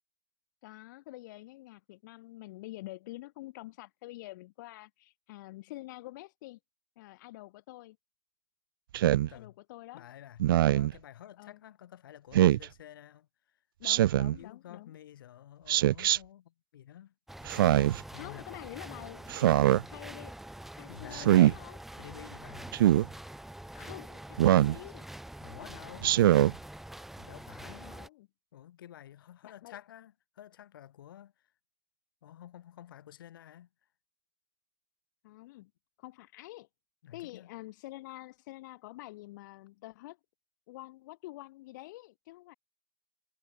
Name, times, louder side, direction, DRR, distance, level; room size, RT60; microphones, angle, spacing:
voice 1, 0.6-6.6 7.0-8.0 9.3-10.1 11.4-11.6 13.8-14.9 18.1-20.3 20.7-21.8 23.7-25.1 27.6-28.3 29.4-29.8 35.2-35.7 36.0-36.7 37.1-40.2 40.7-42.5, left 18 dB, 60° left, 5.5 m, -47 dB
Speech synthesizer, 8.9-9.3 10.4-10.9 12.3-12.7 13.8-14.4 15.7-16.2 17.5-18.0 19.3-19.8 21.1-21.5 22.7-23.1 24.4-24.8 26.0-26.5, right 13 dB, 90° right, 0.5 m, -23 dB
voice 2, 9.1-9.5 9.9-13.6 14.0-17.1 18.1-18.5 20.9-21.6 21.9-22.8 25.4-26.3 27.2-28.0 28.5-31.5 32.2-33.7 37.0-37.5, left 11 dB, 90° left, 7.1 m, -50 dB
sound 1, 17.3-28.1, right 1 dB, ahead, 6.6 m, -45 dB
supercardioid pair, 145°, 11 cm